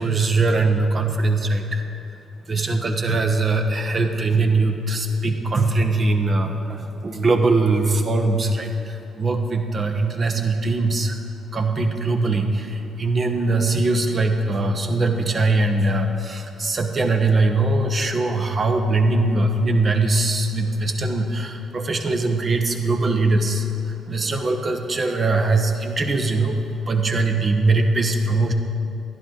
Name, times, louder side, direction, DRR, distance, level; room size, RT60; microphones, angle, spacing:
voice 1, 0.0-1.8 2.5-11.2 11.5-26.6 26.9-28.5, right 2 dB, 45° right, 5 dB, 1.1 m, -21 dB
11.0 x 10.5 x 3.9 m, 2.8 s
hypercardioid pair, 50°, 0 cm